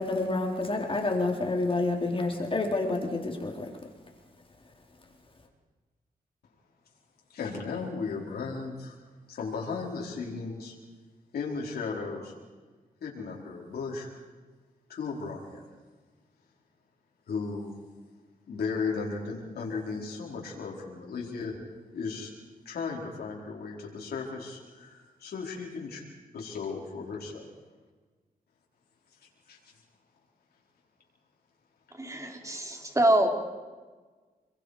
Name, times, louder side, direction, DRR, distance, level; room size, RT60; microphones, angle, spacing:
voice 1, 0.0-3.7, left 2 dB, 35° left, 1 dB, 3.9 m, -28 dB
voice 2, 7.3-9.0 9.3-10.8 11.3-12.3 13.0-14.1 14.9-15.7 17.3-17.8 18.5-21.5 21.9-22.3 22.6-26.0 26.3-27.5 29.5-29.6, left 4 dB, 90° left, -2 dB, 4.5 m, -35 dB
voice 3, 32.0-33.3, right 1 dB, 20° right, 3 dB, 3.9 m, -25 dB
28.0 x 22.5 x 5.0 m, 1.4 s
cardioid pair, 80°, 16 cm